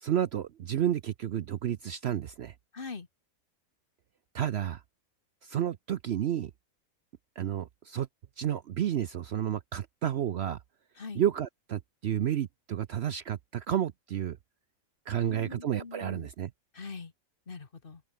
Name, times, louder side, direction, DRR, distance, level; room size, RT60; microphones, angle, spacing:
voice 1, 0.0-2.5 4.3-4.8 5.4-6.5 7.4-8.1 8.4-10.6 11.1-14.4 15.1-16.5, right 10 dB, 60° right, 0.8 m, -31 dB
voice 2, 2.7-3.1 11.0-11.2 15.2-16.3 16.7-17.1 17.5-18.0, left 4 dB, 40° left, 1.6 m, -42 dB
open air
omnidirectional pair, 1.4 m